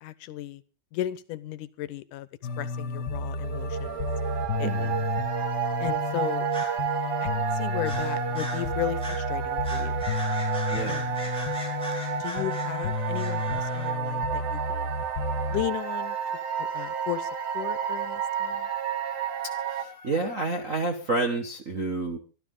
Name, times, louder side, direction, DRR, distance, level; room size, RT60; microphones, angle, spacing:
voice 1, 0.0-0.6 0.9-2.3 2.6-4.1 4.6-5.1 5.8-6.5 7.2-10.1 10.8-11.3 12.2-14.9 15.5-16.2 16.6-18.7, left 14 dB, 85° left, 2.4 m, -35 dB
sound 1, 2.4-20.6, left 4 dB, 55° left, 1.1 m, -33 dB
sound 2, 3.3-19.8, right 9 dB, 80° right, 2.5 m, -31 dB
voice 2, 4.6-5.0 10.7-11.1 19.7-22.2, right 3 dB, 50° right, 0.9 m, -29 dB
sound 3, 6.5-6.8 7.8-8.7 9.0-9.3 9.6-13.9, equal, ahead, 4.7 m, -39 dB
25.0 x 12.5 x 3.8 m
omnidirectional pair, 3.6 m